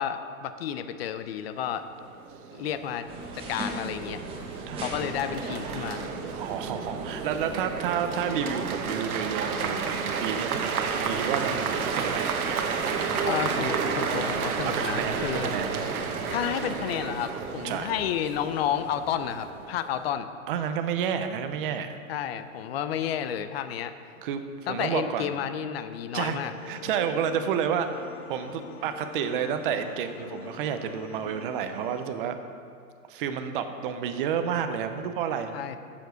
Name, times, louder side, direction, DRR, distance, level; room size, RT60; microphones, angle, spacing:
voice 1, 0.0-1.8 2.5-3.1 3.3-4.2 4.8-6.1 13.3-15.6 16.3-20.3 22.1-23.9 24.7-26.5 35.5-35.8, left 9 dB, 45° left, 11 dB, 0.6 m, -31 dB
sound 1, 1.8-20.0, right 6 dB, 85° right, 1.1 m, -32 dB
sound 2, 3.1-16.2, right 2 dB, 15° right, 0.9 m, -39 dB
voice 2, 6.4-12.3 14.6-15.8 17.6-17.9 20.5-22.0 24.2-24.4 24.7-25.4 26.1-32.4 33.1-35.5, right 8 dB, 40° right, 8 dB, 0.7 m, -30 dB
sound 3, 26.5-32.0, left 6 dB, 85° left, 1.0 m, -44 dB
7.9 x 7.1 x 6.3 m, 2.4 s
hypercardioid pair, 150°, 42 cm